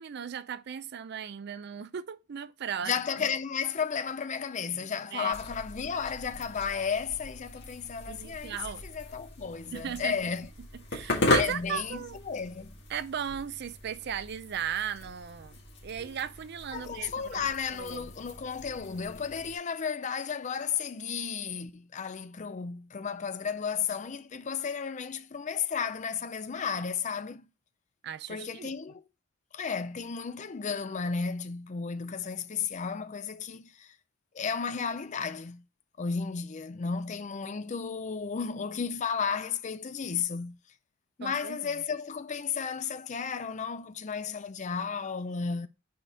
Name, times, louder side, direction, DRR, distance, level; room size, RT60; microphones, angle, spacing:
voice 1, 0.0-2.9 4.7-5.3 8.1-8.8 9.7-10.2 10.9-12.2 12.9-17.5 17.7-18.1 28.0-28.7 41.2-41.6, right 8 dB, 50° right, 0.4 m, -37 dB
voice 2, 2.8-10.5 11.4-12.7 16.7-27.4 28.3-29.0 29.5-33.9 34.3-35.6 36.0-40.6 41.2-45.7, left 6 dB, 35° left, 0.5 m, -33 dB
sound 1, 5.3-19.6, left 2 dB, 55° left, 2.0 m, -37 dB
5.0 x 4.2 x 5.4 m
head